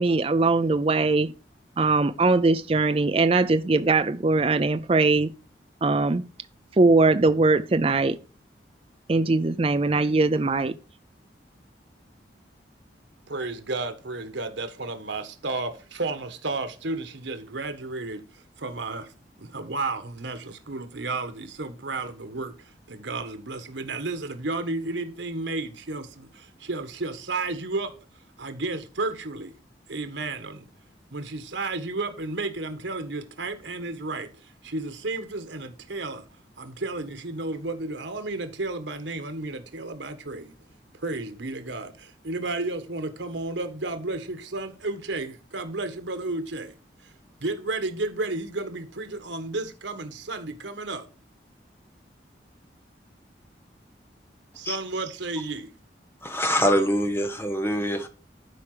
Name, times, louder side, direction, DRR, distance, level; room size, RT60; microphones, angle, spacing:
voice 1, 0.0-1.3 1.8-5.3 5.8-6.2 6.8-8.2 9.1-10.8, right 3 dB, 30° right, 0.5 m, -21 dB
voice 2, 13.3-19.1 19.4-27.9 28.4-29.5 29.9-30.7 31.1-36.2 36.6-40.6 41.0-46.7 47.0-47.1 47.4-51.1 54.5-55.7, right 3 dB, 85° right, 1.4 m, -32 dB
voice 3, 56.2-58.1, equal, 15° left, 1.1 m, -24 dB
11.5 x 4.9 x 4.9 m
head